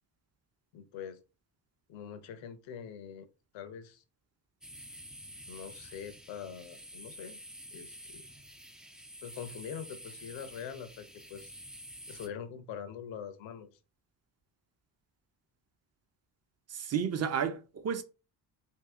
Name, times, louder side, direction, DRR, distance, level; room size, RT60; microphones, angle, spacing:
voice 1, 0.7-1.2 1.9-3.3 3.5-4.0 5.5-7.4 7.7-8.3 9.2-11.5 12.1-13.7, left 8 dB, 75° left, 0.8 m, -44 dB
sound 1, 4.6-12.3, equal, ahead, 0.3 m, -49 dB
voice 2, 16.7-18.0, right 7 dB, 35° right, 0.7 m, -32 dB
2.8 x 2.7 x 3.5 m
supercardioid pair, 65°, 46 cm